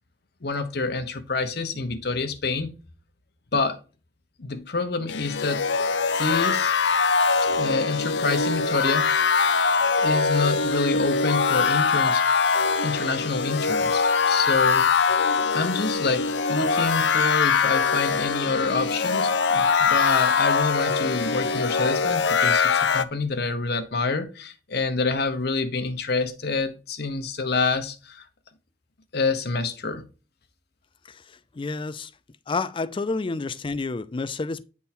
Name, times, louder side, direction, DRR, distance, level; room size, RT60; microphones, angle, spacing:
voice 1, 0.4-2.7 3.5-3.8 4.4-5.6 6.1-6.7 7.5-9.2 9.8-12.2 12.8-15.1 15.5-28.3 29.1-30.1, left 3 dB, 65° left, 0.9 m, -27 dB
sound 1, 5.1-23.0, left 5 dB, 90° left, 0.5 m, -22 dB
voice 2, 31.1-32.1 32.5-34.6, left 3 dB, 30° left, 0.4 m, -30 dB
9.4 x 3.6 x 4.3 m
head